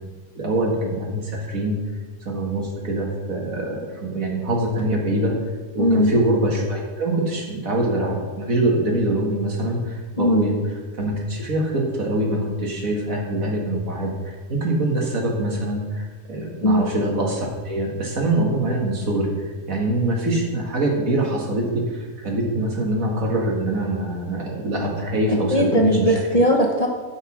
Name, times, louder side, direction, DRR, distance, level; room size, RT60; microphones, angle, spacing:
voice 1, 0.3-1.8 2.3-5.4 5.7-10.6 11.0-26.1, right 1 dB, 60° right, -1 dB, 2.4 m, -24 dB
voice 2, 5.8-6.1 10.2-10.4 16.6-16.8 25.3-26.9, equal, 30° left, 1 dB, 0.9 m, -18 dB
12.5 x 5.7 x 6.1 m, 1.4 s
omnidirectional pair, 1.6 m